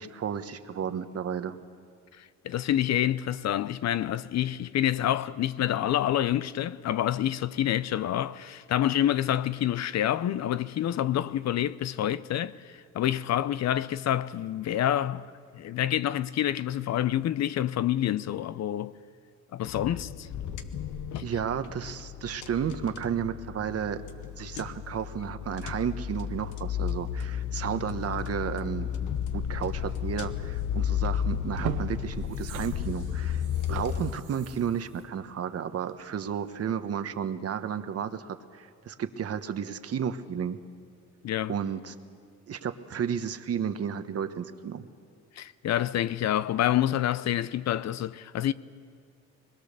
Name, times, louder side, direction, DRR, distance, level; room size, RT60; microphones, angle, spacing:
voice 1, 0.0-1.6 21.2-24.0 24.4-28.9 29.3-40.6 41.5-41.9 42.5-44.8, right 8 dB, 50° right, 1.1 m, -32 dB
voice 2, 2.2-15.3 15.5-18.9 19.5-20.3 21.1-21.2 41.2-41.5 45.4-48.5, left 11 dB, 60° left, 0.6 m, -27 dB
sound 1, 19.6-34.1, left 9 dB, 80° left, 1.1 m, -33 dB
sound 2, 30.9-31.0 31.4-36.2 36.6-36.7, right 12 dB, 90° right, 0.8 m, -41 dB
22.5 x 21.0 x 6.7 m
cardioid pair, 90°, 30 cm